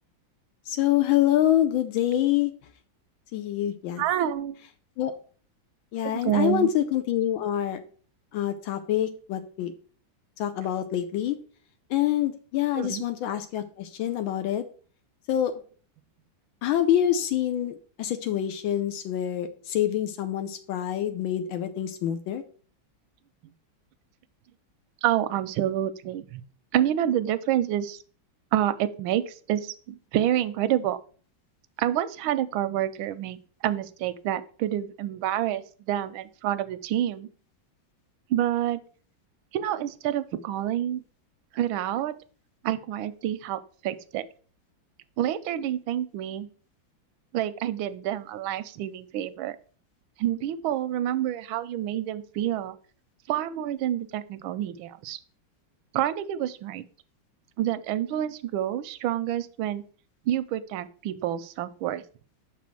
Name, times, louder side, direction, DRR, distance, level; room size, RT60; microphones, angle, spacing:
voice 1, 0.7-2.5 3.3-4.0 5.0-5.1 5.9-7.8 8.3-9.7 10.4-11.4 11.9-14.6 15.3-15.5 16.6-22.4, left 11 dB, 85° left, 7 dB, 1.4 m, -26 dB
voice 2, 4.0-4.6 6.3-6.7 12.8-13.0 25.0-26.4 26.7-28.0 28.5-31.0 31.8-37.3 38.3-38.8 39.5-41.0 41.5-42.1 42.6-44.2 45.2-46.5 47.3-49.6 50.2-52.8 53.3-55.2 55.9-56.8 57.6-59.8 60.3-62.0, right 11 dB, 90° right, 13 dB, 1.4 m, -28 dB
6.0 x 4.2 x 6.1 m, 0.42 s
omnidirectional pair, 2.1 m